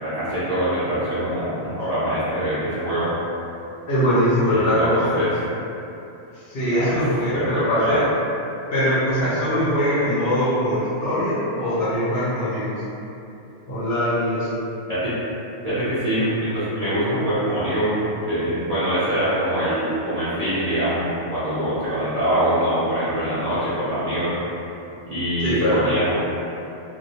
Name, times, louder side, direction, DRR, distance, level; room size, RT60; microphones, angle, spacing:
voice 1, 0.0-3.1 4.5-4.9 5.1-5.3 6.7-7.0 7.3-8.0 14.9-15.1 15.6-24.3 25.1-26.1, right 1 dB, 50° right, -14 dB, 0.4 m, -24 dB
voice 2, 3.9-5.3 6.4-8.0 8.7-12.8 13.7-14.5 25.4-25.9, equal, 60° left, -10 dB, 0.7 m, -22 dB
2.2 x 2.0 x 2.7 m, 2.8 s
omnidirectional pair, 1.3 m